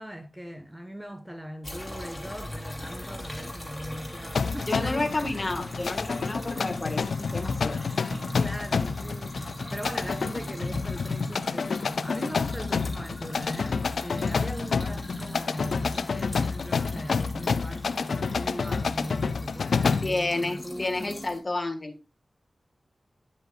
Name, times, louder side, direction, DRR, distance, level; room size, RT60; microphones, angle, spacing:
voice 1, 0.0-5.1 8.4-21.2, equal, 5° right, 1.0 m, -39 dB
sound 1, 1.6-21.4, left 1 dB, 10° left, 2.7 m, -39 dB
sound 2, 4.3-20.2, left 5 dB, 90° left, 0.3 m, -29 dB
voice 2, 4.7-7.9 20.0-22.0, left 2 dB, 40° left, 1.5 m, -30 dB
9.6 x 7.8 x 2.4 m
wide cardioid pair, 60°, 0 cm